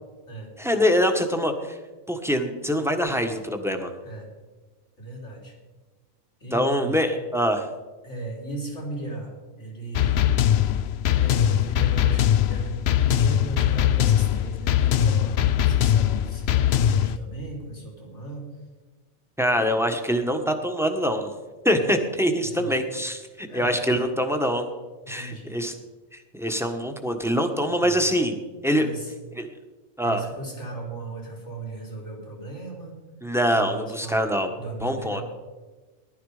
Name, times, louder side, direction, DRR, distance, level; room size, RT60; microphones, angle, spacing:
voice 1, 0.6-1.8 2.1-3.9 6.5-7.7 19.4-21.3 21.6-24.6 25.1-25.7 26.1-28.4 28.6-28.8 29.4-29.5 30.0-30.2 33.2-34.5 34.8-35.2, equal, ahead, 5 dB, 1.4 m, -24 dB
voice 2, 5.0-5.5 6.4-7.0 8.0-9.3 9.6-10.3 11.1-18.5 19.5-19.8 21.7-22.0 22.4-22.9 23.5-23.8 25.0-25.5 27.8-28.0 28.7-29.1 30.0-33.0 33.5-35.2, right 2 dB, 90° left, -1 dB, 4.0 m, -37 dB
sound 1, 10.0-17.2, left 10 dB, 70° left, 0.8 m, -21 dB
18.5 x 11.5 x 5.0 m, 1.3 s
omnidirectional pair, 1.2 m